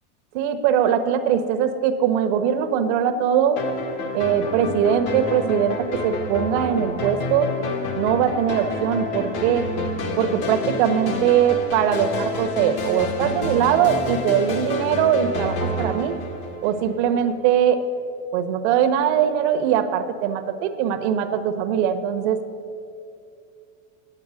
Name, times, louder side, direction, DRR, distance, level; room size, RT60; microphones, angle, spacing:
voice 1, 0.3-3.6 4.1-7.5 8.0-9.7 10.2-16.1 16.6-17.8 18.3-22.4, right 9 dB, 60° right, 9 dB, 1.0 m, -21 dB
sound 1, 3.6-17.1, left 2 dB, 50° left, 1.7 m, -29 dB
9.8 x 8.7 x 6.3 m, 2.5 s
supercardioid pair, 125°, 39 cm